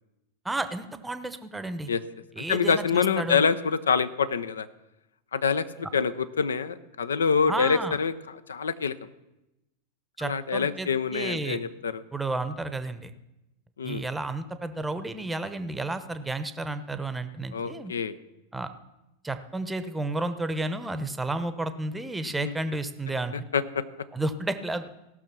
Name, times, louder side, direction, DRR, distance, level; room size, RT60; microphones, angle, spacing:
voice 1, 0.4-1.9 2.3-3.5 7.5-8.0 10.2-11.6 12.1-13.1 13.8-17.9 18.5-18.7 19.2-23.4 24.1-24.9, right 2 dB, 10° right, 11 dB, 0.8 m, -32 dB
voice 2, 2.4-4.7 5.3-5.7 5.9-8.1 8.5-9.0 10.2-12.0 13.8-14.0 17.5-18.2 22.4-22.5 23.5-23.8, left 6 dB, 70° left, 14 dB, 0.6 m, -26 dB
16.5 x 6.3 x 6.0 m, 0.94 s
figure-of-eight pair, 90°, 0 cm